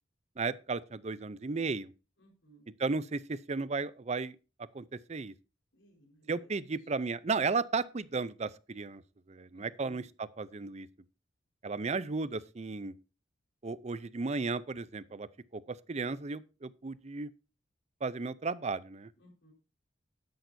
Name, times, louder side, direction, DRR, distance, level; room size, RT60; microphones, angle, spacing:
voice 1, 0.4-1.9 2.8-4.4 4.7-5.3 6.3-9.0 9.3-10.9 11.6-12.9 13.6-15.3 15.5-17.3 18.0-19.1, right 4 dB, 35° right, 0.5 m, -34 dB
voice 2, 2.2-2.6 5.7-6.3 9.5-10.0 19.2-19.5, right 1 dB, 75° left, 4.5 m, -61 dB
12.5 x 10.5 x 2.7 m
head